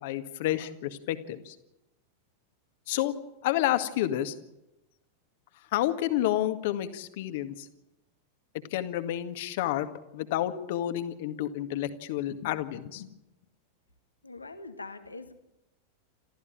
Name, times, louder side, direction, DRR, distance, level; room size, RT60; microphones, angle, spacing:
voice 1, 0.0-1.6 2.9-3.1 3.4-4.3 5.7-7.7 8.7-9.9 10.1-13.1, left 13 dB, 50° left, 10 dB, 1.9 m, -30 dB
voice 2, 14.2-15.3, left 3 dB, 80° left, 8 dB, 2.1 m, -43 dB
27.5 x 14.5 x 9.2 m, 0.93 s
figure-of-eight pair, 90°, 0 cm